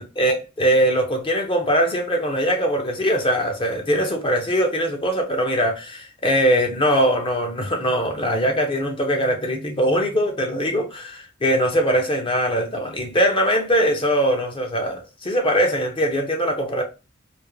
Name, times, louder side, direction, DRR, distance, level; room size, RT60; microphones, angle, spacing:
voice 1, 0.0-16.8, equal, 25° left, 0.5 m, -21 dB
2.4 x 2.0 x 3.0 m
head